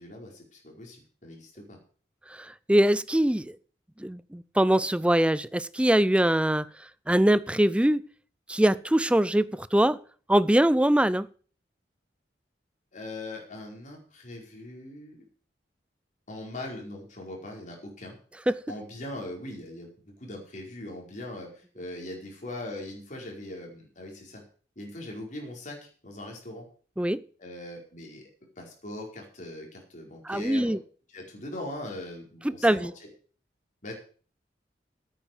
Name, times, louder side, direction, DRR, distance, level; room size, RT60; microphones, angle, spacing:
voice 1, 0.0-1.8 12.9-15.2 16.3-18.2 18.7-24.4 24.7-26.6 27.4-28.2 28.6-30.8 31.1-32.9 33.8-33.9, left 1 dB, 45° left, 0 dB, 4.9 m, -40 dB
voice 2, 2.3-3.6 4.0-6.7 7.1-8.0 8.5-10.0 10.3-11.3 18.5-18.6 27.0-27.2 30.3-30.8 32.6-32.9, right 1 dB, 5° right, 17 dB, 0.5 m, -23 dB
9.5 x 9.0 x 7.8 m, 0.42 s
head